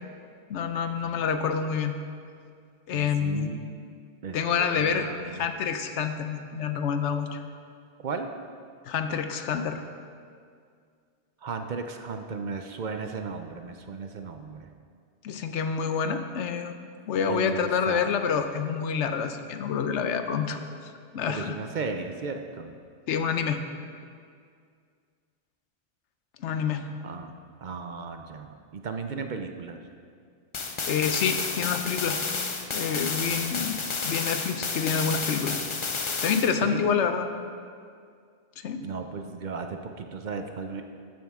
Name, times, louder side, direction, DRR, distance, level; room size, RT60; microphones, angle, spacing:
voice 1, 0.5-1.9 2.9-3.5 4.3-5.1 5.4-7.4 8.9-9.8 15.2-16.7 17.1-21.5 23.1-23.6 26.4-26.9 30.9-32.2 32.7-33.8 34.0-35.6 36.2-37.3 38.6-38.9, left 6 dB, 85° left, 8 dB, 1.0 m, -27 dB
voice 2, 2.9-3.6 4.2-5.5 8.0-8.3 11.4-14.7 17.3-18.1 21.3-22.7 27.0-27.3 27.6-29.8 36.6-36.8 38.8-40.8, right 4 dB, 50° right, 6 dB, 0.6 m, -35 dB
sound 1, 30.5-36.5, left 4 dB, 35° left, 0.5 m, -31 dB
13.0 x 7.3 x 3.6 m, 2.2 s
omnidirectional pair, 1.2 m